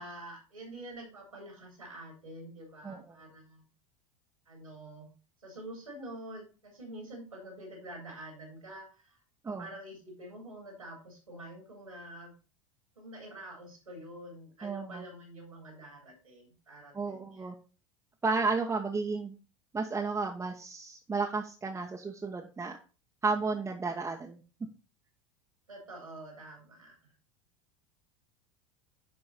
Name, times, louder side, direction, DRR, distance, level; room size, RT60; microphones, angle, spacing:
voice 1, 0.0-3.7 4.5-5.1 5.4-9.2 9.5-12.3 13.0-17.5 25.7-26.9, right 1 dB, 85° right, 0 dB, 3.6 m, -47 dB
voice 2, 14.6-15.0 16.9-17.5 18.2-19.3 19.7-22.8 23.2-24.4, right 4 dB, 15° right, -1 dB, 1.1 m, -32 dB
10.0 x 4.7 x 4.2 m, 0.34 s
figure-of-eight pair, 80°, 17 cm